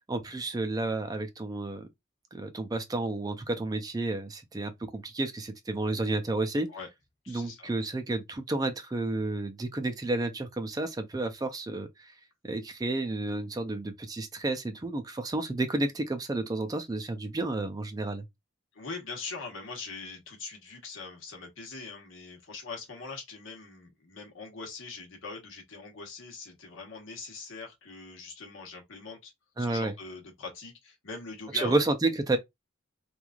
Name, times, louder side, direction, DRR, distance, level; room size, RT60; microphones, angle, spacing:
voice 1, 0.0-1.9 2.3-6.7 7.3-12.1 12.4-18.3 29.6-29.9 31.5-32.4, right 2 dB, 20° right, 0.3 m, -31 dB
voice 2, 7.2-7.7 18.7-29.3 29.6-31.8, left 4 dB, 85° left, 1.1 m, -42 dB
3.0 x 2.4 x 2.3 m
head